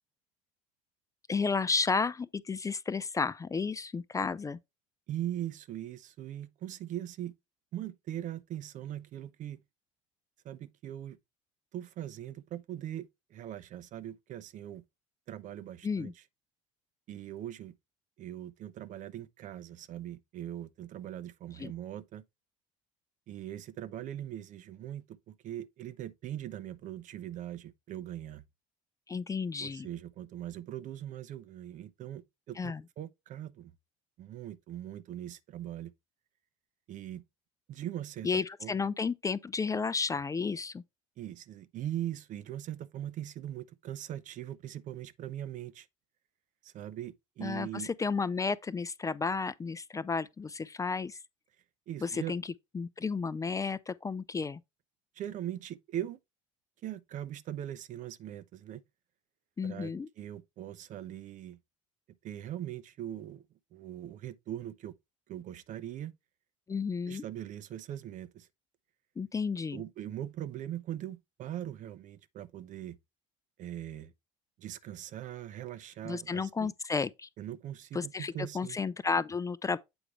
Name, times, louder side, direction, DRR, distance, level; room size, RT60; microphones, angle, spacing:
voice 1, 1.3-4.6 15.8-16.1 21.6-21.7 29.1-29.9 32.6-32.8 38.2-40.8 47.4-51.2 52.0-54.6 59.6-60.1 66.7-67.2 69.2-69.8 76.0-77.3 77.9-79.8, left 5 dB, 20° left, 0.5 m, -32 dB
voice 2, 5.1-7.3 7.7-9.6 10.4-11.2 11.7-14.8 15.3-16.1 17.1-17.7 18.2-22.2 23.3-28.4 29.6-33.7 34.2-35.9 36.9-37.2 37.7-38.7 41.2-45.9 46.6-47.9 51.9-52.3 55.2-56.2 56.8-58.8 59.6-61.6 62.2-63.4 63.7-64.9 65.3-66.1 67.1-68.5 69.7-73.0 73.6-74.1 74.6-76.7 77.4-78.8, right 12 dB, 50° right, 0.7 m, -41 dB
8.0 x 4.8 x 3.2 m
hypercardioid pair, 70°, 16 cm